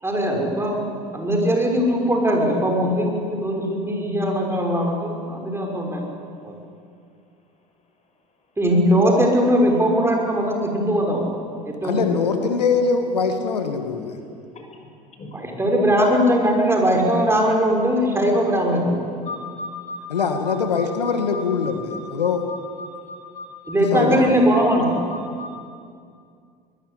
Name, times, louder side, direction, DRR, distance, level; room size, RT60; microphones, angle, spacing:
voice 1, 0.0-6.0 6.4-6.5 8.6-11.3 11.7-12.1 15.3-19.0 23.7-24.9, equal, 10° right, 1 dB, 6.0 m, -20 dB
voice 2, 11.8-14.2 20.1-22.4 23.9-24.3, left 5 dB, 85° left, 6 dB, 1.7 m, -23 dB
voice 3, 19.3-24.0 24.8-25.5, left 3 dB, 35° left, 3 dB, 6.2 m, -36 dB
23.5 x 21.0 x 8.4 m, 2.3 s
hypercardioid pair, 70°, 20 cm